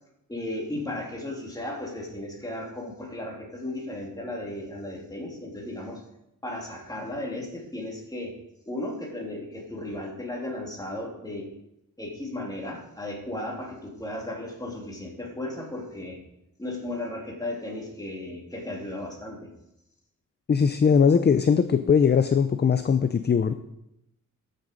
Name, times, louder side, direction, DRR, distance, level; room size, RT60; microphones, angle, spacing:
voice 1, 0.3-6.0 6.4-8.4 8.7-11.5 12.0-16.2 16.6-19.5, left 1 dB, 10° left, -1 dB, 2.5 m, -35 dB
voice 2, 20.5-23.5, left 6 dB, 30° left, 10 dB, 0.4 m, -20 dB
13.5 x 6.7 x 5.0 m, 0.85 s
wide cardioid pair, 140°, 33 cm